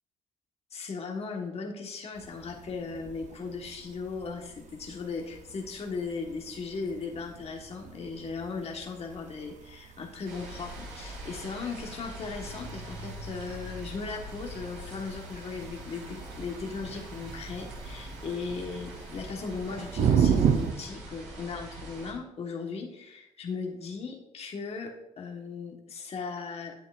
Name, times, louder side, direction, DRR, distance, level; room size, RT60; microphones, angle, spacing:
voice 1, 0.7-26.7, left 4 dB, 50° left, 1 dB, 1.3 m, -37 dB
sound 1, 2.1-20.7, right 7 dB, 60° right, 0.7 m, -35 dB
sound 2, 10.2-22.1, right 1 dB, 85° right, 2.3 m, -43 dB
8.1 x 7.9 x 2.4 m, 0.85 s
supercardioid pair, 70°, 14 cm